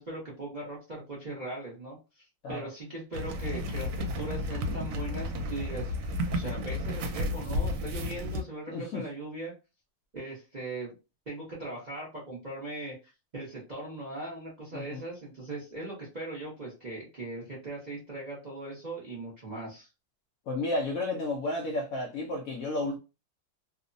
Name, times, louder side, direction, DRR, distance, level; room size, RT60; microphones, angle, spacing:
voice 1, 0.0-5.9 6.3-9.5 10.1-10.9 11.3-19.9, right 2 dB, 55° right, 0.5 m, -39 dB
sound 1, 3.1-8.4, left 1 dB, 80° right, 1.2 m, -32 dB
voice 2, 8.7-9.0 14.7-15.0 20.5-23.0, left 2 dB, 80° left, 0.7 m, -32 dB
3.0 x 2.0 x 2.5 m
omnidirectional pair, 2.0 m